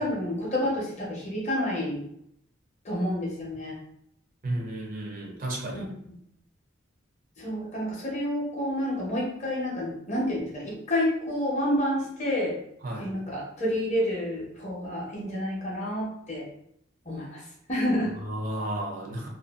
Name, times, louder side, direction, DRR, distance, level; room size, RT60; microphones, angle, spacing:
voice 1, 0.0-2.0 2.8-3.8 5.7-5.8 7.4-12.6 13.0-16.5 17.1-18.1, left 1 dB, 35° left, -3 dB, 0.7 m, -29 dB
voice 2, 4.4-5.9 12.8-13.1 18.1-19.3, right 1 dB, 45° right, -1 dB, 0.5 m, -33 dB
2.6 x 2.2 x 2.3 m, 0.73 s
head